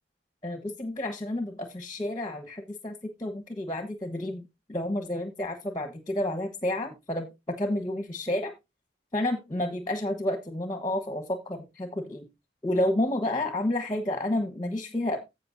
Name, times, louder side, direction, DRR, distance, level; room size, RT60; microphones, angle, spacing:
voice 1, 0.4-2.9 3.2-4.4 4.7-8.5 9.1-12.2 12.6-15.2, left 1 dB, 25° left, 5 dB, 1.2 m, -30 dB
16.0 x 5.4 x 2.7 m, 0.23 s
head